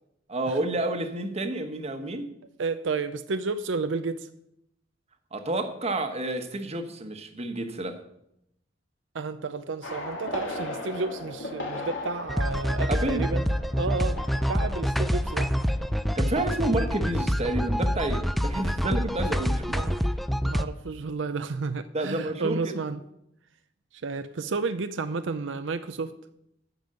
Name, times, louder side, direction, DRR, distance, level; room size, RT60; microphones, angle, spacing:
voice 1, 0.3-2.3 5.3-8.0 12.9-13.3 16.1-19.8 21.9-22.8, right 2 dB, 35° right, 7 dB, 1.2 m, -29 dB
voice 2, 2.6-4.3 9.1-13.4 13.8-14.2 14.5-15.5 19.7-20.0 20.4-23.0 24.0-26.1, right 4 dB, 80° right, 10 dB, 0.6 m, -31 dB
sound 1, 9.8-16.3 16.5-16.9, left 2 dB, 80° left, 2.7 m, -38 dB
sound 2, 12.3-20.6, equal, ahead, 0.4 m, -26 dB
13.0 x 5.4 x 7.7 m, 0.79 s
head